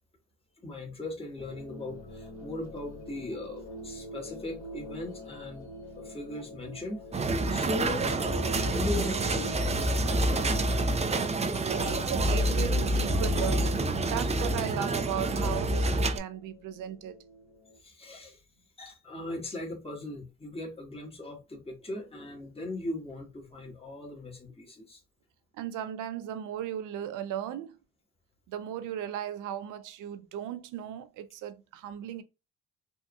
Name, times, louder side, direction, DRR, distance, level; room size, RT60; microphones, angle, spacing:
voice 1, 0.6-5.7 5.9-10.8 11.6-11.8 14.1-14.3 17.8-18.4 18.8-25.0, left 2 dB, 20° left, 1.6 m, -39 dB
sound 1, 1.4-17.8, equal, 85° left, 1.4 m, -47 dB
sound 2, 7.1-16.2, right 1 dB, 20° right, 0.5 m, -27 dB
voice 2, 11.6-17.2 25.5-27.8 28.5-32.2, right 10 dB, 85° right, 0.6 m, -36 dB
3.5 x 2.8 x 2.3 m
cardioid pair, 90°, 30 cm